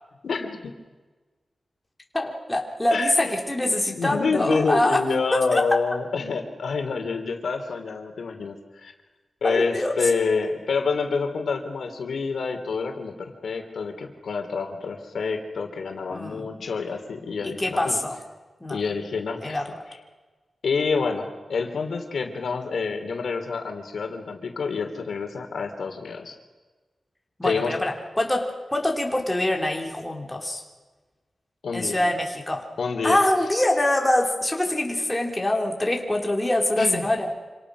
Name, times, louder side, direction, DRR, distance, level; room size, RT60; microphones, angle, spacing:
voice 1, 0.2-0.6 2.9-3.4 3.9-8.5 8.8-8.9 9.4-18.0 18.7-19.6 20.6-26.3 27.4-27.7 31.6-32.0 32.8-33.2 36.8-37.1, left 4 dB, 80° left, 5 dB, 3.2 m, -27 dB
voice 2, 2.1-5.0 5.3-5.6 9.4-9.9 16.1-16.5 17.4-18.2 18.6-18.8 19.4-19.6 27.4-30.6 31.7-32.7 33.0-37.3, left 1 dB, 10° left, 1 dB, 3.1 m, -24 dB
27.0 x 26.5 x 6.2 m, 1.3 s
wide cardioid pair, 175°, 0 cm